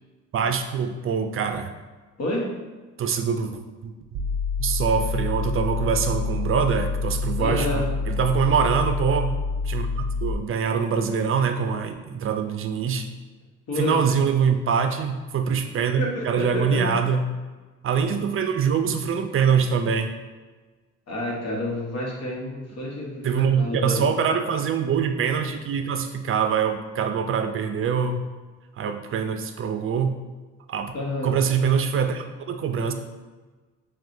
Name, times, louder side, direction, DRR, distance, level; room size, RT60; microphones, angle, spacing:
voice 1, 0.3-1.7 3.0-3.9 4.6-9.3 9.7-13.1 13.8-17.2 17.8-20.1 23.2-28.2 28.8-30.2 30.7-31.0 31.2-32.9, right 6 dB, 45° right, 7 dB, 0.5 m, -24 dB
voice 2, 2.2-2.5 7.4-7.9 13.7-14.0 16.0-16.9 21.1-24.1 30.9-31.4, left 1 dB, 55° left, -2 dB, 1.2 m, -29 dB
sound 1, 4.1-10.3, left 4 dB, 90° right, 0.6 m, -27 dB
5.8 x 2.3 x 2.7 m, 1.3 s
cardioid pair, 90°, 30 cm